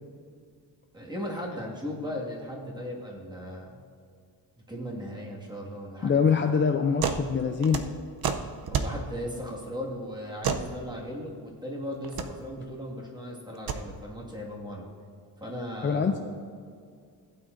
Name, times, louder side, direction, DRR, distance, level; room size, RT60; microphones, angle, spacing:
voice 1, 0.9-3.8 4.7-6.5 8.7-14.9 15.4-16.2, equal, 10° right, -4 dB, 1.9 m, -37 dB
voice 2, 6.0-7.8 15.8-16.2, left 6 dB, 30° left, 4 dB, 0.4 m, -24 dB
sound 1, 7.0-7.3 7.5-9.0 10.4-10.7 12.0-12.3 13.5-13.8, right 6 dB, 60° right, 0.7 m, -29 dB
16.5 x 8.8 x 2.6 m, 2.2 s
cardioid pair, 130°, 42 cm